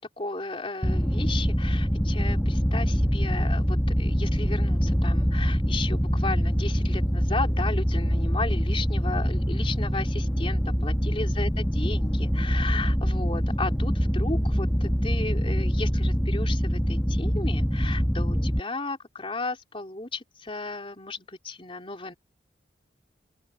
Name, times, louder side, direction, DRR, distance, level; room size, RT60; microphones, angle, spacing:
voice 1, 0.0-22.1, left 3 dB, 30° left, 3.9 m, -34 dB
sound 1, 0.8-18.6, equal, 5° left, 1.8 m, -24 dB
open air
head